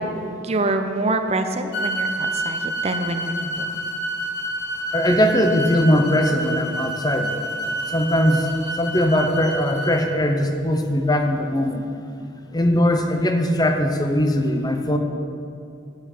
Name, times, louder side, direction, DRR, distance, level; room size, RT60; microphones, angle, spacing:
voice 1, 0.4-3.7, right 2 dB, 30° right, 7 dB, 0.6 m, -25 dB
sound 1, 1.7-10.0, right 1 dB, 55° left, 1.6 m, -28 dB
voice 2, 4.9-7.3 7.9-8.5 8.7-11.9 12.5-15.0, left 1 dB, 20° left, 5 dB, 0.7 m, -20 dB
10.0 x 6.4 x 6.6 m, 2.5 s
head